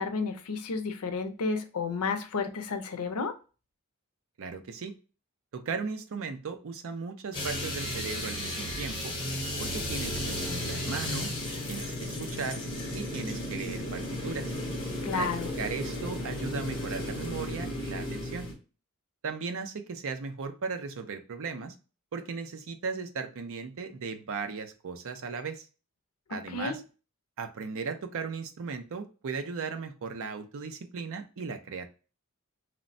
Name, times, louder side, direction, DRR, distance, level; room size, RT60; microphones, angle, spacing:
voice 1, 0.0-3.3 15.0-15.5 26.3-26.8, left 4 dB, 85° left, 8 dB, 0.5 m, -32 dB
voice 2, 4.4-5.0 5.5-9.1 9.6-11.4 11.7-12.6 12.9-14.5 15.1-15.3 15.6-18.5 19.2-21.7 22.1-25.7 26.3-26.8 27.4-31.9, right 5 dB, 65° right, 8 dB, 0.5 m, -37 dB
sound 1, 7.3-18.5, left 1 dB, 25° left, 0.8 m, -34 dB
3.0 x 2.1 x 2.5 m, 0.34 s
head